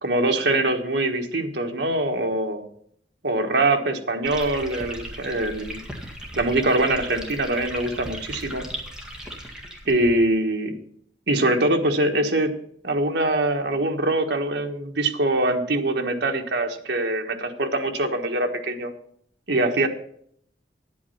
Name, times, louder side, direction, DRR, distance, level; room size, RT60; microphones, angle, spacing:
voice 1, 0.0-2.6 3.2-5.8 6.4-8.6 9.9-10.7 11.3-12.5 12.8-18.9 19.5-19.9, right 2 dB, 65° right, 4 dB, 1.4 m, -23 dB
sound 1, 4.2-10.1, right 1 dB, 5° right, 1.8 m, -37 dB
10.0 x 8.5 x 5.6 m, 0.66 s
head